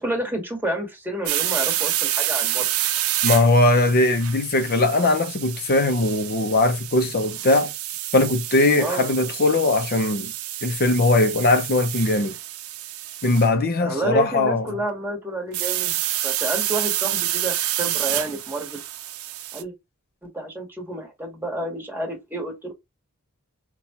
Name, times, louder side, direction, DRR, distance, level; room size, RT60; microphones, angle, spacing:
voice 1, 0.0-2.7 8.8-9.1 13.8-18.8 19.5-19.7 20.2-22.7, right 1 dB, 10° right, 1.3 m, -30 dB
sound 1, 1.3-13.5 15.5-19.6, right 13 dB, 80° right, 0.5 m, -28 dB
voice 2, 3.2-7.7 8.1-10.3 10.6-12.3 13.2-14.7, left 2 dB, 45° left, 0.6 m, -20 dB
5.5 x 2.3 x 2.9 m
head